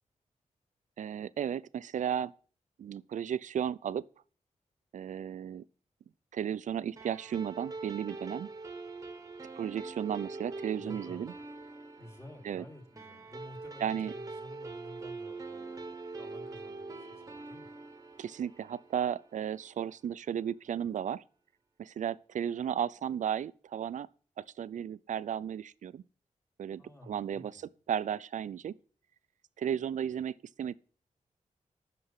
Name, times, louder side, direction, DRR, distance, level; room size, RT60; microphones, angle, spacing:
voice 1, 1.0-2.3 2.8-4.1 4.9-5.6 6.3-8.5 9.5-11.3 12.4-12.6 13.8-14.1 18.2-21.2 21.8-24.1 24.4-26.0 26.6-27.6 27.9-28.7 29.6-30.7, right 9 dB, 75° right, 0.5 m, -34 dB
sound 1, 7.0-19.7, right 3 dB, 25° right, 1.2 m, -44 dB
voice 2, 10.7-11.4 12.0-17.7 26.8-27.7, left 1 dB, 20° left, 3.2 m, -51 dB
9.5 x 6.8 x 8.1 m
wide cardioid pair, 170°, 13 cm